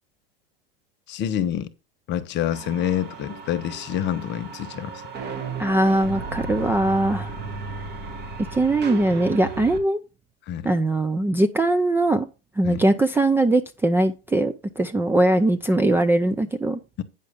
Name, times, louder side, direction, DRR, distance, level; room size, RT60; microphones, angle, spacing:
voice 1, 1.1-1.7 2.1-5.0 10.5-10.7 12.6-12.8 17.0-17.1, left 10 dB, 35° left, 1.1 m, -27 dB
sound 1, 2.5-9.8, right 4 dB, 35° right, 2.1 m, -35 dB
voice 2, 5.6-7.3 8.5-10.0 10.6-12.3 12.6-16.8, right 2 dB, 5° right, 0.5 m, -21 dB
9.2 x 6.4 x 3.6 m
hypercardioid pair, 120°, 30 cm